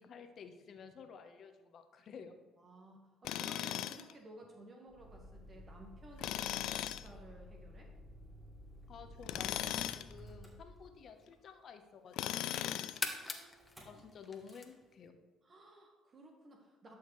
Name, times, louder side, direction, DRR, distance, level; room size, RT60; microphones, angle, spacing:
voice 1, 0.0-2.3 8.9-12.9 13.8-15.2, left 6 dB, 55° left, 6 dB, 1.0 m, -53 dB
voice 2, 2.6-7.9 12.6-14.1 15.4-16.9, right 2 dB, 40° right, 1 dB, 1.5 m, -56 dB
Tools, 3.2-4.1 6.2-7.1 9.2-10.1 12.1-13.1, left 12 dB, 75° left, 0.3 m, -38 dB
Motor vehicle (road), 4.9-11.3 13.6-14.0 14.3-14.7, equal, 10° right, 2.8 m, -53 dB
sound 1, 10.7-11.6 12.1-15.1, left 3 dB, 25° left, 1.1 m, -45 dB
11.5 x 6.4 x 3.2 m, 1.2 s
supercardioid pair, 80°, 0 cm